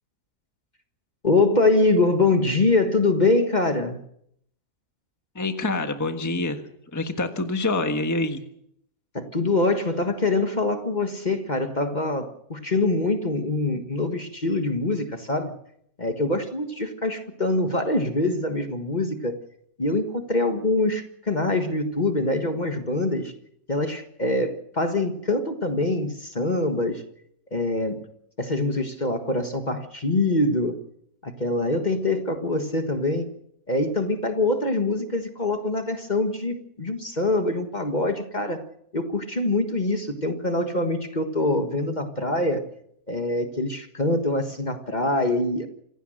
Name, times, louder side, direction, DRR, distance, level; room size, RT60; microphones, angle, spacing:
voice 1, 1.2-4.0 9.1-15.5 16.0-19.4 19.8-23.3 23.7-27.0 27.5-28.0 28.4-30.8 31.2-33.3 33.7-38.6 38.9-42.6 43.1-45.7, left 2 dB, 30° left, 6 dB, 1.6 m, -24 dB
voice 2, 5.3-6.6 6.9-8.4, left 2 dB, 10° left, 6 dB, 1.4 m, -26 dB
26.5 x 16.5 x 6.5 m, 0.72 s
omnidirectional pair, 1.6 m